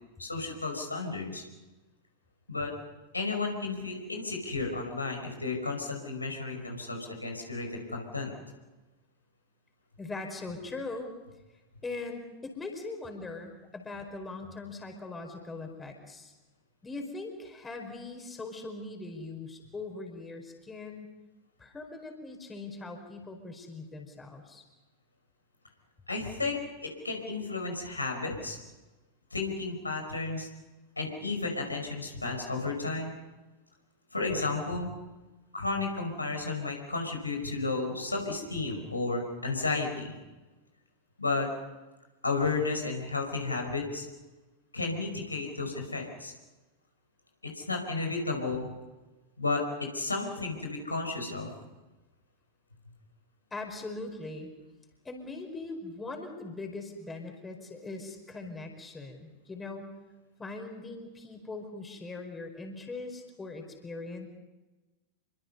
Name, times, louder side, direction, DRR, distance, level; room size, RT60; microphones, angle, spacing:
voice 1, 0.2-1.4 2.5-2.7 3.1-8.3 26.1-28.6 29.3-30.5 31.0-33.2 34.1-34.9 35.5-40.2 41.2-41.5 42.2-44.1 44.7-46.3 47.4-48.7 49.4-51.5, left 3 dB, 80° left, 3 dB, 5.2 m, -33 dB
voice 2, 10.0-11.1 11.8-16.3 16.8-21.1 21.6-24.6 53.5-54.5 55.0-59.9 60.4-64.3, left 3 dB, 15° left, 4 dB, 4.8 m, -41 dB
29.0 x 24.0 x 5.5 m, 1.1 s
figure-of-eight pair, 90°, 0 cm